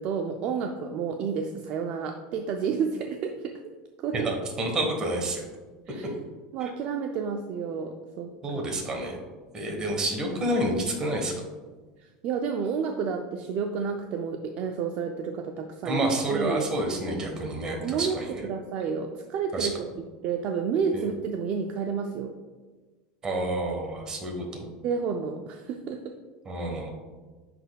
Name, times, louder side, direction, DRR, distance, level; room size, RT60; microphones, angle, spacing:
voice 1, 0.0-3.6 4.0-4.3 5.9-6.1 6.5-8.3 12.0-16.7 17.8-18.2 18.4-19.7 20.2-22.3 24.8-26.2, right 6 dB, 45° right, 4 dB, 0.4 m, -30 dB
voice 2, 4.1-5.5 6.6-6.7 8.4-9.2 9.5-11.3 15.8-18.5 19.5-19.7 20.9-21.0 23.2-24.7 26.4-26.9, right 1 dB, 20° right, 1 dB, 1.2 m, -29 dB
10.5 x 4.1 x 2.3 m, 1.3 s
supercardioid pair, 155°, 3 cm